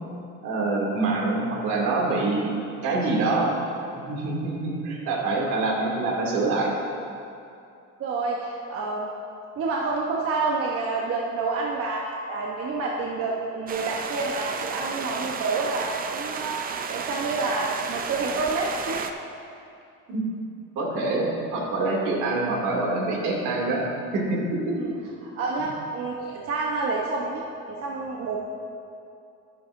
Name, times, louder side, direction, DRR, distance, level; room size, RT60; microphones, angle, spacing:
voice 1, 0.4-2.5 2.8-3.5 4.1-6.7 20.1-20.2 20.8-23.8 24.1-24.4 24.7-24.8, right 3 dB, 80° right, -3 dB, 2.6 m, -25 dB
voice 2, 8.0-9.1 9.6-19.1 24.8-24.9 25.2-27.4 27.7-28.4, right 3 dB, 50° right, -2 dB, 1.0 m, -28 dB
sound 1, 13.7-19.1, right 6 dB, 30° right, 0.5 m, -33 dB
12.0 x 11.0 x 2.6 m, 2.6 s
cardioid pair, 135°, 29 cm